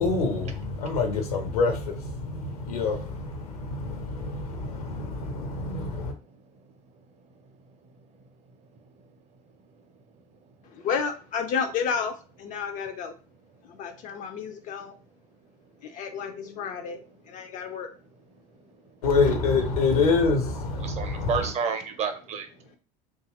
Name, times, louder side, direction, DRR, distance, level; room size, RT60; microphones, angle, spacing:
voice 1, 0.0-6.1 19.0-21.3, left 4 dB, 70° left, 0.7 m, -26 dB
voice 2, 2.2-8.2 8.6-9.1 9.6-10.8 17.4-17.5 18.4-19.0 20.8-22.8, right 5 dB, 35° right, 0.6 m, -38 dB
voice 3, 10.6-13.1 13.6-15.0 15.8-17.9 19.3-19.5 20.4-20.5 20.9-21.0, left 6 dB, 40° left, 0.4 m, -32 dB
2.7 x 2.3 x 2.8 m
figure-of-eight pair, 65°, 20 cm